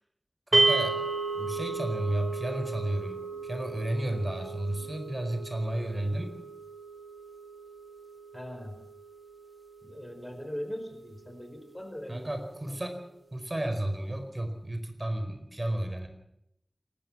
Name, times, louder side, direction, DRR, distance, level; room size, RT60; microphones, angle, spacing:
voice 1, 0.5-1.0 1.3-6.3 12.1-13.0 13.3-16.1, right 1 dB, 40° right, 6 dB, 4.7 m, -32 dB
sound 1, 0.5-10.8, right 3 dB, 60° right, 1.9 m, -33 dB
voice 2, 8.3-8.8 9.8-12.3 12.7-12.8, equal, 20° left, 6 dB, 4.7 m, -40 dB
28.0 x 12.5 x 7.4 m, 0.78 s
wide cardioid pair, 45°, 0 cm